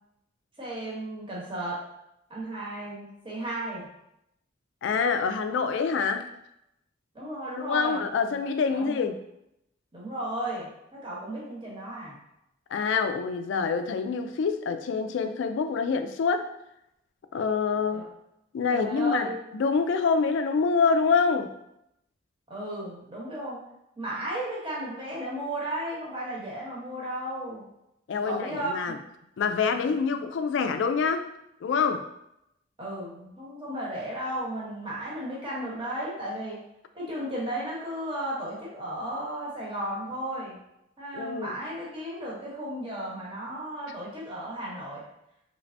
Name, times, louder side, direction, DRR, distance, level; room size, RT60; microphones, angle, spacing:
voice 1, 0.6-1.8 2.3-3.9 7.1-8.4 8.7-9.1 9.9-12.2 17.9-18.0 18.7-19.4 22.5-23.6 24.0-27.6 28.2-28.7 29.7-29.9 32.8-36.6 36.9-40.6 41.0-45.0, right 1 dB, 25° right, -6 dB, 1.0 m, -34 dB
voice 2, 4.8-6.3 7.6-9.2 12.7-16.5 17.3-18.1 18.5-19.3 19.5-21.5 28.1-29.0 29.4-31.3 31.6-32.0 41.1-41.5, left 5 dB, 65° left, 8 dB, 0.3 m, -26 dB
3.2 x 3.2 x 2.6 m, 0.81 s
head